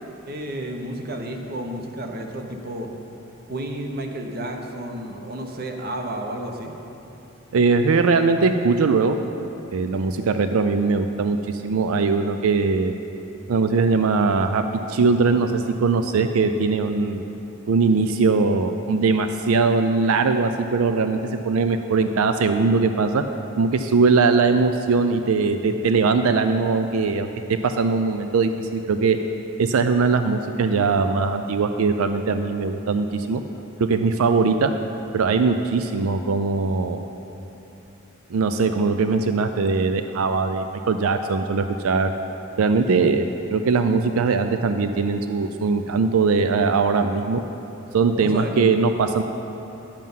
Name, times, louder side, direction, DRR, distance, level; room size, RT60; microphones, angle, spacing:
voice 1, 0.3-2.9 3.5-6.7 48.2-48.5, right 1 dB, 45° right, 3 dB, 0.9 m, -31 dB
voice 2, 7.5-9.2 9.7-12.9 13.5-14.6 14.9-17.2 17.7-23.2 23.6-29.2 29.6-33.4 33.8-34.7 35.1-37.0 38.3-42.1 42.6-47.4 47.9-49.2, right 4 dB, 90° right, 8 dB, 0.4 m, -21 dB
10.5 x 7.5 x 5.5 m, 3.0 s
head